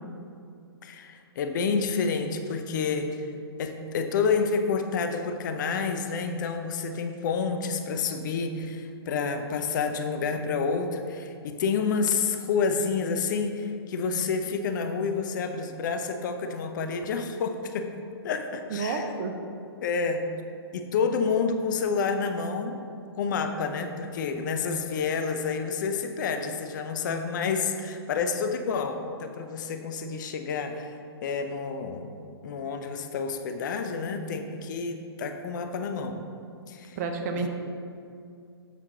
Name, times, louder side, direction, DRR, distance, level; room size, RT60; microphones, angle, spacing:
voice 1, 0.8-3.3 3.6-17.9 18.2-19.1 19.8-20.3 20.7-22.8 23.2-30.9 31.2-32.1 32.4-36.3 36.7-37.0, left 5 dB, 45° left, 6 dB, 0.5 m, -29 dB
voice 2, 18.7-19.3 37.0-37.5, right 4 dB, 35° right, 4 dB, 0.7 m, -30 dB
7.6 x 4.3 x 3.9 m, 2.4 s
figure-of-eight pair, 125°, 14 cm